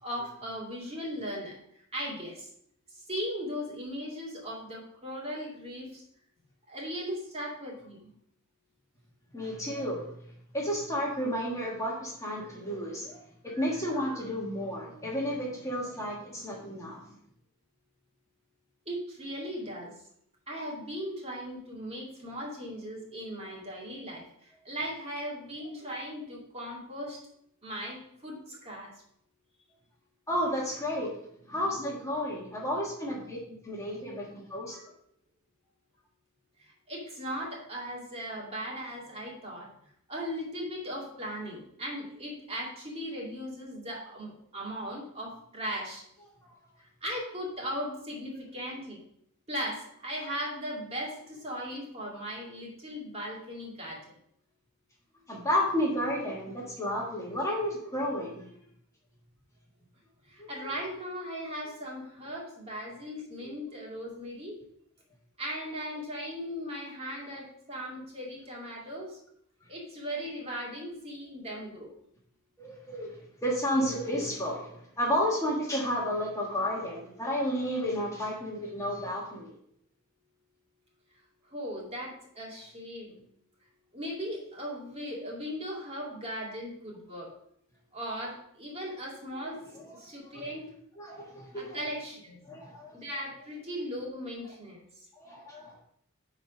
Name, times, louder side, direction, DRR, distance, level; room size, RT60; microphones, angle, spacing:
voice 1, 0.0-1.5 1.9-2.5 3.1-6.0 6.7-8.1 13.5-13.7 13.9-14.1 18.9-19.9 20.5-27.2 27.6-28.9 36.6-39.7 40.1-46.0 46.8-49.0 49.5-54.2 60.3-64.6 65.4-69.2 69.7-71.9 81.5-83.2 83.9-87.3 87.9-89.6 89.9-90.7 91.5-92.4 92.9-95.0, equal, 30° right, -3 dB, 2.3 m, -38 dB
voice 2, 9.3-13.2 13.4-17.0 30.3-31.1 31.5-34.9 46.4-46.5 55.3-58.5 60.4-60.7 63.4-63.5 72.6-79.5 89.7-90.0 90.3-90.4 91.0-91.8 92.4-93.0 95.2-95.8, equal, 15° left, -3 dB, 1.6 m, -32 dB
9.6 x 4.1 x 5.0 m, 0.70 s
head